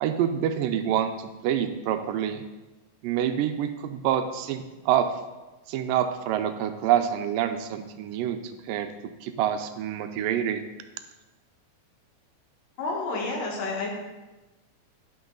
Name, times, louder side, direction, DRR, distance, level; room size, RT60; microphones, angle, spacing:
voice 1, 0.0-2.4 3.0-5.1 5.7-8.4 8.7-8.9 9.2-10.6, right 10 dB, 85° right, 8 dB, 2.3 m, -26 dB
voice 2, 12.8-13.9, left 3 dB, 80° left, -2 dB, 3.4 m, -30 dB
11.0 x 6.2 x 3.9 m, 1.1 s
omnidirectional pair, 3.9 m